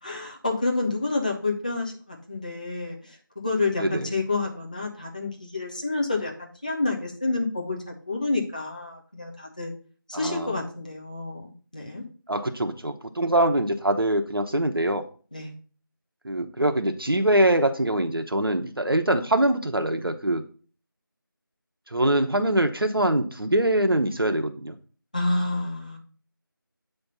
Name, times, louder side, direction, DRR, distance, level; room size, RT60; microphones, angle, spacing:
voice 1, 0.0-9.7 10.1-12.0 15.3-15.5 25.1-26.0, left 3 dB, 20° left, -1 dB, 0.7 m, -29 dB
voice 2, 3.8-4.1 10.1-10.5 12.3-15.0 16.2-20.4 21.9-24.8, right 1 dB, 80° right, 6 dB, 0.9 m, -23 dB
8.1 x 3.4 x 5.6 m, 0.41 s
figure-of-eight pair, 170°, 12 cm